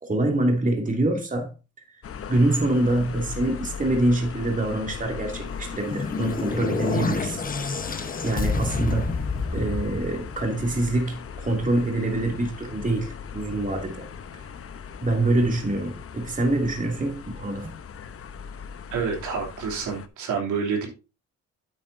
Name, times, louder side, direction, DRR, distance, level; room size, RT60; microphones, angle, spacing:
voice 1, 0.0-1.5 2.3-7.4 8.2-9.1 9.5-14.1 15.0-17.7, right 1 dB, 25° right, 2.7 m, -25 dB
sound 1, 2.0-20.1, left 6 dB, 50° left, 1.0 m, -38 dB
sound 2, 5.5-10.9, left 4 dB, 30° left, 1.1 m, -29 dB
voice 2, 18.9-20.9, right 5 dB, 80° right, 3.1 m, -28 dB
9.1 x 8.4 x 2.7 m
cardioid pair, 90°, 30 cm